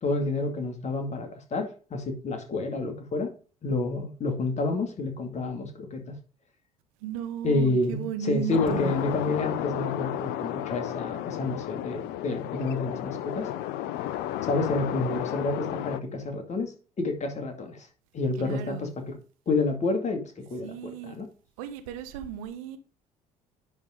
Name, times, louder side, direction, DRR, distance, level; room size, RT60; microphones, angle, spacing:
voice 1, 0.0-3.3 3.6-6.2 7.4-13.5 14.4-17.9 18.1-19.2 19.5-21.3, left 3 dB, 40° left, 2.1 m, -29 dB
voice 2, 7.0-8.9 18.4-18.9 20.6-21.1 21.6-22.8, right 9 dB, 70° right, 1.0 m, -35 dB
sound 1, 8.5-16.0, left 12 dB, 60° left, 0.6 m, -32 dB
10.5 x 3.8 x 5.1 m
figure-of-eight pair, 55°, 19 cm